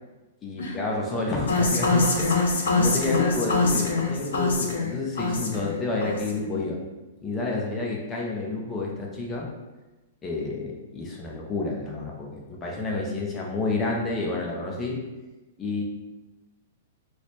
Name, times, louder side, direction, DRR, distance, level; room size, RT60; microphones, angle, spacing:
voice 1, 0.4-6.8 7.2-9.5 10.2-15.0 15.6-15.8, left 3 dB, 10° left, -2 dB, 0.5 m, -29 dB
sound 1, 1.5-5.8 6.0-6.4, left 3 dB, 80° left, 0.6 m, -24 dB
voice 2, 3.1-3.9, left 3 dB, 55° left, -2 dB, 0.8 m, -35 dB
3.2 x 2.1 x 4.0 m, 1.1 s
supercardioid pair, 180°, 0 cm